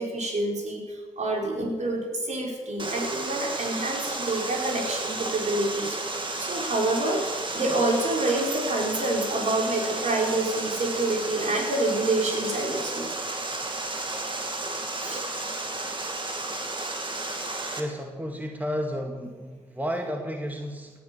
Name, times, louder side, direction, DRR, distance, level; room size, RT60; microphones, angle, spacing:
voice 1, 0.0-6.0 6.4-7.3 7.5-13.1 15.0-15.3, right 2 dB, 50° right, 0 dB, 4.8 m, -27 dB
Water, 2.8-17.8, right 2 dB, 30° right, 2.9 m, -32 dB
voice 2, 17.8-20.9, equal, 10° right, 3 dB, 2.1 m, -32 dB
17.0 x 11.5 x 6.9 m, 1.5 s
hypercardioid pair, 40°, 16 cm